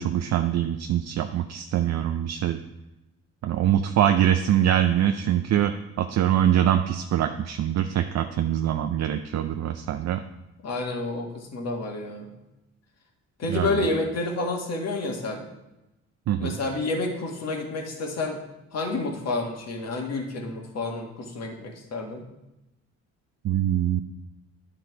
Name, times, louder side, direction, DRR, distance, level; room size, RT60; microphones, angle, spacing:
voice 1, 0.0-2.6 3.4-10.2 13.5-13.8 16.3-16.6 23.4-24.0, right 10 dB, 60° right, 7 dB, 0.5 m, -24 dB
voice 2, 10.6-12.3 13.4-15.4 16.4-18.4 18.7-22.2, left 2 dB, 60° left, 1 dB, 1.7 m, -29 dB
10.0 x 3.9 x 4.6 m, 0.96 s
cardioid pair, 90°, 30 cm